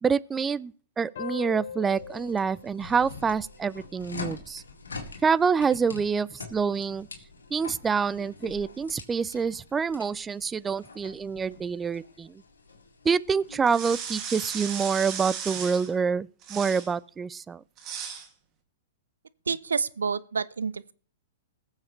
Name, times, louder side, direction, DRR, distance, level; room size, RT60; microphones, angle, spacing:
voice 1, 0.0-4.6 5.2-7.1 7.5-12.3 13.0-17.6, right 6 dB, 15° right, 0.4 m, -27 dB
sound 1, 1.2-4.3, left 7 dB, 65° left, 0.9 m, -42 dB
sound 2, 1.9-14.7, left 4 dB, 90° left, 2.2 m, -45 dB
sound 3, 13.6-15.9 16.4-16.9 17.8-18.3, right 7 dB, 35° right, 2.2 m, -36 dB
voice 2, 19.5-20.9, right 5 dB, 85° right, 0.6 m, -29 dB
20.5 x 7.3 x 3.2 m
hypercardioid pair, 115°, 0 cm